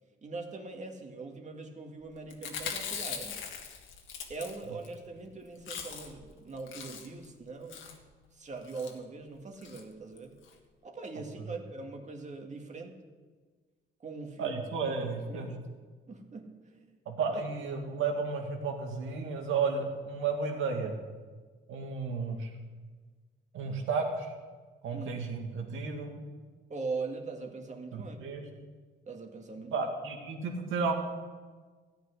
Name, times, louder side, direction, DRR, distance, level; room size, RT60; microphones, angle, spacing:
voice 1, 0.2-3.5 4.3-7.9 8.3-10.4 10.8-13.0 14.0-15.0 15.3-15.6 16.1-17.0 17.3-17.4 24.9-25.1 26.7-28.2 29.1-29.9, right 3 dB, 35° right, 3 dB, 2.0 m, -41 dB
Chewing mastication, 2.3-4.9 5.2-5.3 5.5-6.2 6.6-7.2 7.7-8.0 8.6-8.9 9.6-9.8 10.2-10.3 10.4-10.5, left 7 dB, 80° left, 1.7 m, -40 dB
voice 2, 14.4-15.6 17.1-20.9 21.7-22.5 23.5-24.3 24.8-26.1 27.9-28.4 29.7-30.9, right 4 dB, 80° right, 3 dB, 2.2 m, -33 dB
14.0 x 5.8 x 9.7 m, 1.4 s
cardioid pair, 90°, 20 cm